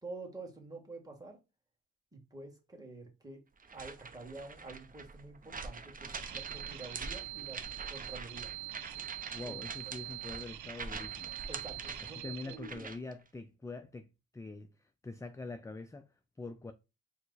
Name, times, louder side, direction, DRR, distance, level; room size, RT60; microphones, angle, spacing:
voice 1, 0.0-1.4 2.1-3.4 3.7-7.6 7.9-8.5 9.4-9.5 11.5-12.9, right 3 dB, 15° right, 1.7 m, -48 dB
sound 1, 3.6-13.1, right 4 dB, 30° right, 0.7 m, -45 dB
sound 2, 6.1-12.6, right 16 dB, 80° right, 0.5 m, -44 dB
voice 2, 9.3-11.3 12.1-16.7, left 3 dB, 10° left, 0.3 m, -45 dB
4.5 x 2.1 x 3.9 m
cardioid pair, 70°, 29 cm